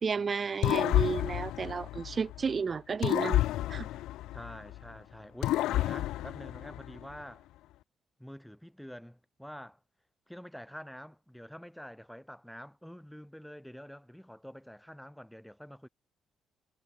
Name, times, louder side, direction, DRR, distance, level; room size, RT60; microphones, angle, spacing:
voice 1, 0.0-3.4 3.7-3.9, right 5 dB, 40° right, 1.0 m, -32 dB
sound 1, 0.6-2.5 3.0-4.9 5.4-7.1, left 15 dB, 90° left, 0.8 m, -30 dB
voice 2, 4.3-7.5 8.2-9.8 10.3-15.9, equal, ahead, 2.6 m, -47 dB
cardioid pair, 90°, 0 cm